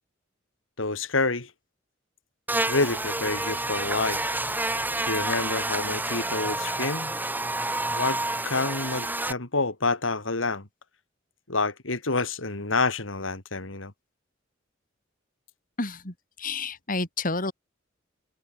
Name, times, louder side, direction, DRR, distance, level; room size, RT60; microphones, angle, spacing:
voice 1, 0.8-1.5 2.7-4.2 4.7-7.1 7.9-8.2 8.4-10.7 11.5-13.9, left 3 dB, 90° left, 3.0 m, -28 dB
Buzz, 2.5-9.3, right 2 dB, 10° right, 6.0 m, -29 dB
voice 2, 15.8-17.5, left 3 dB, 45° left, 4.8 m, -30 dB
open air
head